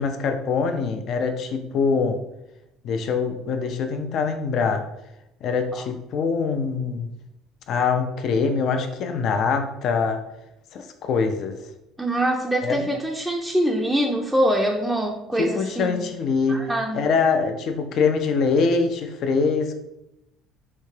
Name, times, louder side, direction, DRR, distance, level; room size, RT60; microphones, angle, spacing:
voice 1, 0.0-2.2 2.8-4.8 5.4-7.1 7.7-10.2 10.7-11.6 12.6-12.8 15.4-16.6 16.9-19.7, left 5 dB, 60° left, 7 dB, 0.4 m, -23 dB
voice 2, 12.0-16.1 16.5-17.1, right 1 dB, 5° right, -1 dB, 0.4 m, -24 dB
3.3 x 2.8 x 3.2 m, 0.87 s
supercardioid pair, 85°, 0 cm